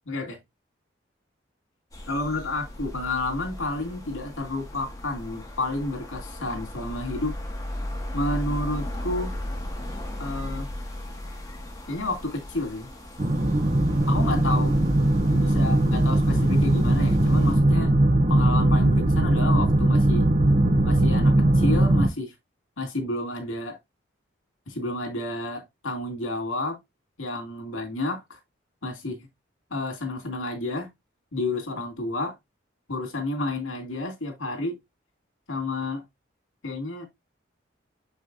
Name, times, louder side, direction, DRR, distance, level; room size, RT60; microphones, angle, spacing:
voice 1, 0.1-0.4 2.1-7.3 8.1-9.3 10.2-10.7 11.9-12.9 14.1-14.7 15.3-17.9 18.3-20.3 20.8-22.3 22.8-23.8 24.7-26.8 27.2-28.4 28.8-29.2 29.7-30.9 31.3-32.4 32.9-34.8 35.5-36.0 36.6-37.1, left 2 dB, 90° left, 2.7 m, -30 dB
sound 1, 1.9-17.5, left 1 dB, 20° left, 1.9 m, -37 dB
sound 2, 13.2-22.1, right 1 dB, 35° right, 0.8 m, -20 dB
6.9 x 6.2 x 2.7 m
head